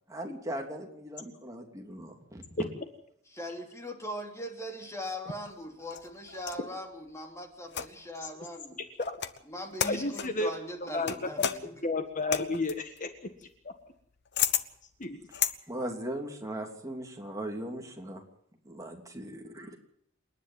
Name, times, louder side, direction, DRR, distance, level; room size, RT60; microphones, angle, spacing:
voice 1, 0.1-2.4 15.7-18.2 18.6-19.8, right 1 dB, 15° right, 2 dB, 3.1 m, -39 dB
voice 2, 3.3-8.8 9.5-11.7, equal, 15° left, 3 dB, 3.1 m, -40 dB
sound 1, 5.4-6.7 7.7-8.2 9.0-9.4 9.8-10.4 11.1-15.6, left 9 dB, 60° left, 1.1 m, -33 dB
voice 3, 9.8-10.5 10.9-11.5 11.8-13.1 13.6-13.7 15.0-15.2, left 2 dB, 40° left, 7 dB, 1.6 m, -31 dB
28.0 x 10.5 x 9.1 m, 0.66 s
head